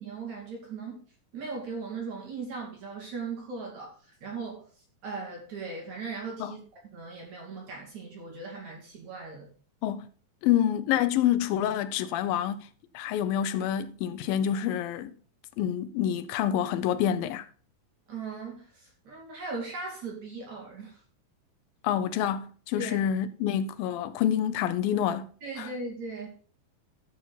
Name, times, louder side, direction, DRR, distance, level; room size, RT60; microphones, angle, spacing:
voice 1, 0.0-1.0 1.3-4.7 5.0-6.6 6.9-9.5 18.1-21.0 22.8-23.0 25.4-26.3, right 4 dB, 50° right, 4.2 m, -38 dB
voice 2, 10.4-12.7 12.9-15.2 15.6-17.5 21.8-25.3 25.6-25.7, left 10 dB, 80° left, 2.5 m, -27 dB
13.0 x 6.5 x 4.1 m
omnidirectional pair, 4.3 m